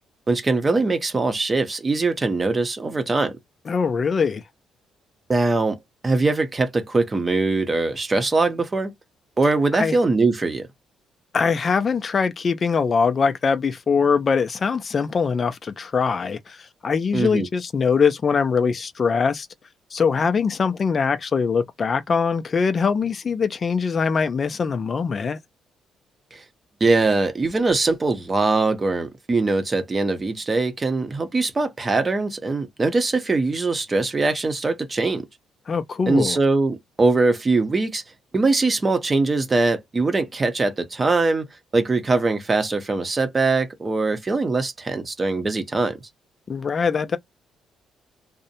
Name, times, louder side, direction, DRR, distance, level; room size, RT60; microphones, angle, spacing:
voice 1, 0.3-3.4 5.3-8.9 9.4-10.7 17.1-17.5 26.3-26.4 26.8-35.3 36.1-38.0 38.3-41.5 41.7-46.0, right 3 dB, 30° right, 0.6 m, -22 dB
voice 2, 3.7-4.4 9.7-10.0 11.3-19.5 19.9-25.4 35.7-36.4 46.5-47.2, left 5 dB, 40° left, 0.3 m, -22 dB
2.5 x 2.0 x 2.7 m
cardioid pair, 90°, 0 cm